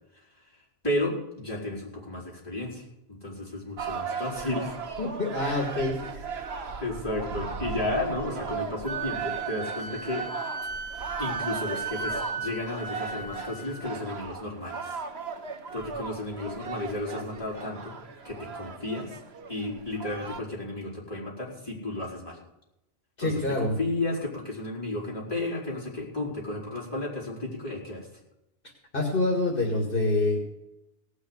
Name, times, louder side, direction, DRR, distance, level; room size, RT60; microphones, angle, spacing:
voice 1, 0.8-4.8 5.4-5.6 6.8-10.3 11.2-14.9 15.7-18.0 18.2-19.2 19.5-22.4 23.2-28.1, left 2 dB, 25° left, -6 dB, 4.9 m, -33 dB
sound 1, 3.8-20.4, right 5 dB, 80° right, 1.3 m, -37 dB
voice 2, 5.0-6.2 23.2-23.8 28.9-30.5, left 2 dB, 60° left, 0 dB, 2.4 m, -26 dB
Wind instrument woodwind instrument, 8.8-14.0, right 4 dB, 50° right, 2.9 m, -36 dB
18.0 x 6.5 x 8.1 m, 0.90 s
omnidirectional pair, 1.0 m